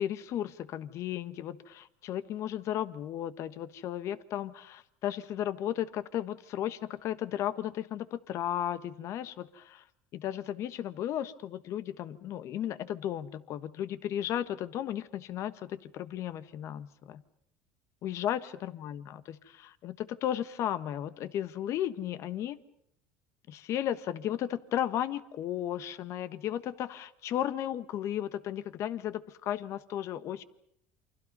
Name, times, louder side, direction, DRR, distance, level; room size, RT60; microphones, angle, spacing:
voice 1, 0.0-9.8 10.1-17.2 18.0-22.6 23.5-30.4, left 11 dB, 55° left, 14 dB, 1.4 m, -34 dB
28.5 x 24.5 x 5.5 m, 0.70 s
supercardioid pair, 95°, 6 cm